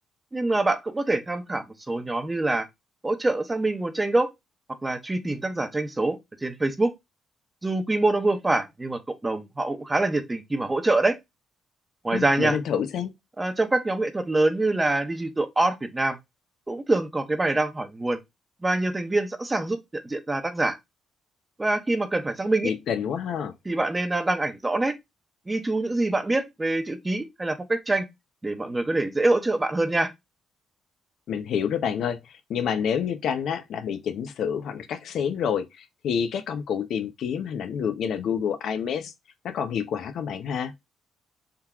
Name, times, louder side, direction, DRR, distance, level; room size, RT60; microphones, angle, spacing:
voice 1, 0.3-2.7 3.0-4.3 4.8-6.9 7.6-11.2 12.0-12.6 13.4-16.2 16.7-18.2 18.6-20.8 21.6-22.7 23.7-25.0 25.5-28.1 28.4-30.1, right 2 dB, 20° right, 0.7 m, -25 dB
voice 2, 12.1-13.1 22.6-23.5 31.3-39.1 39.4-40.7, left 7 dB, 70° left, 0.5 m, -28 dB
3.7 x 2.9 x 2.3 m
cardioid pair, 90°, 0 cm